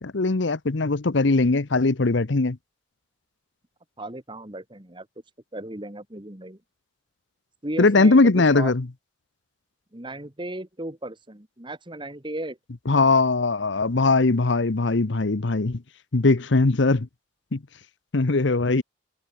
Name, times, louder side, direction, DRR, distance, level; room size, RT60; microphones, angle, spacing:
voice 1, 0.0-2.6 7.8-8.8 12.9-15.8 16.1-17.1 17.5-17.6 18.1-18.8, left 3 dB, 60° left, 0.9 m, -20 dB
voice 2, 4.0-5.1 5.5-6.6 7.6-8.7 9.9-12.6, right 1 dB, 25° right, 2.1 m, -35 dB
head